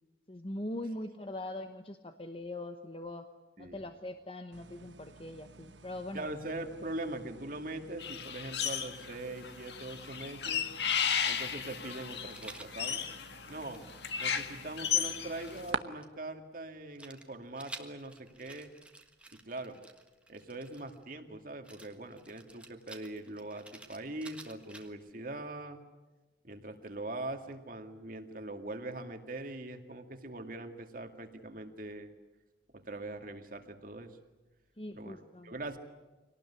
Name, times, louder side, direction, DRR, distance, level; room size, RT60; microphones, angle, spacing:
voice 1, 0.3-3.3 3.6-6.3 34.8-35.5, left 1 dB, 30° left, 7 dB, 1.0 m, -41 dB
sound 1, 4.5-15.8, right 4 dB, 85° right, 1.1 m, -48 dB
voice 2, 6.1-10.7 11.3-13.0 13.5-13.8 14.2-18.7 19.3-19.8 20.3-25.8 26.4-32.1 32.7-34.1 34.9-35.2 35.4-35.8, right 2 dB, 50° right, 6 dB, 2.2 m, -42 dB
sound 2, 8.0-9.1 9.4-15.6, left 8 dB, 70° left, 1.7 m, -34 dB
Rattle, 12.3-12.7 13.4-16.1 17.0-21.0 21.6-25.1, right 2 dB, 5° right, 1.5 m, -52 dB
25.5 x 19.0 x 9.9 m, 1.1 s
head